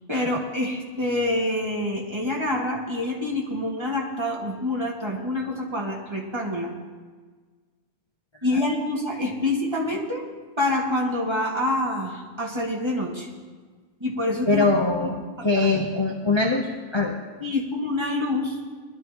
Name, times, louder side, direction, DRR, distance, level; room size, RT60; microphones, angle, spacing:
voice 1, 0.1-6.7 8.4-10.2 10.6-13.3 14.0-14.6 15.4-15.8 17.4-18.6, left 1 dB, 20° right, -3 dB, 2.2 m, -26 dB
voice 2, 14.5-17.1, left 3 dB, 25° left, 1 dB, 0.8 m, -23 dB
20.5 x 12.0 x 3.0 m, 1.5 s
omnidirectional pair, 1.5 m